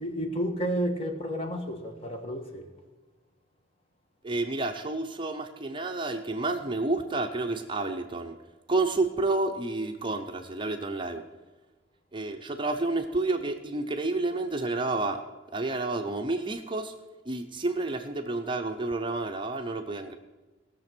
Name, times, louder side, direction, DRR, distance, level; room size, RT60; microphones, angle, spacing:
voice 1, 0.0-2.6, equal, 30° left, 4 dB, 1.4 m, -31 dB
voice 2, 4.2-8.3 8.7-11.2 12.1-15.2 15.5-16.9 17.3-20.1, right 2 dB, 25° right, 5 dB, 0.6 m, -30 dB
17.5 x 6.8 x 6.0 m, 1.2 s
head